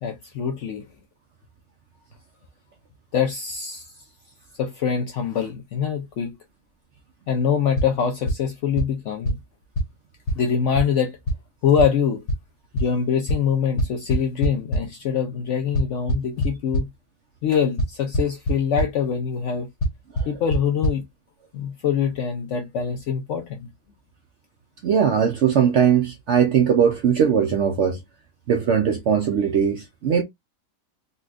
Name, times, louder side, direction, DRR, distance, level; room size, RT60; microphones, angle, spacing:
voice 1, 0.0-0.9 3.1-3.9 4.6-6.4 7.3-9.4 10.4-11.2 11.6-12.2 12.7-16.9 17.4-19.7 20.3-21.0 21.5-23.7, left 7 dB, 70° left, 0.7 m, -24 dB
sound 1, 7.8-7.9 8.3-8.4 8.8-8.9 9.3-9.4 9.8-9.9 10.3-10.4 10.8-10.9 11.3-11.4 11.8-11.9 12.3-12.4 12.8-12.9 13.3-13.4 13.8-14.8 15.8-16.8 17.8-17.9 18.1-18.5 18.8-18.9 19.8-19.9 20.2-20.3 20.5-20.6 20.8-20.9, equal, 90° left, 1.5 m, -21 dB
voice 2, 24.8-28.0 28.5-30.2, right 7 dB, 70° right, 0.7 m, -20 dB
4.0 x 2.3 x 2.4 m
omnidirectional pair, 1.7 m